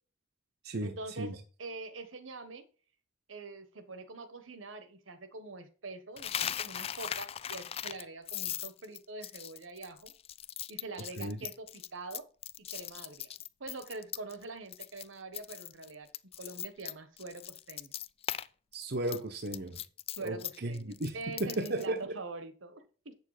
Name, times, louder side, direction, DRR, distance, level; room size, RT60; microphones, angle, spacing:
voice 1, 0.8-1.3 1.6-2.6 3.3-10.1 10.7-12.2 12.7-13.3 13.6-16.1 16.4-17.9 20.2-23.1, right 3 dB, 75° right, 1.3 m, -44 dB
Coin (dropping), 6.2-14.4 14.7-15.0 15.3-18.5 18.7-21.9, left 10 dB, 30° left, 0.3 m, -39 dB
voice 2, 18.7-19.8 20.2-22.2, right 1 dB, 50° right, 0.9 m, -35 dB
8.3 x 6.8 x 4.9 m
head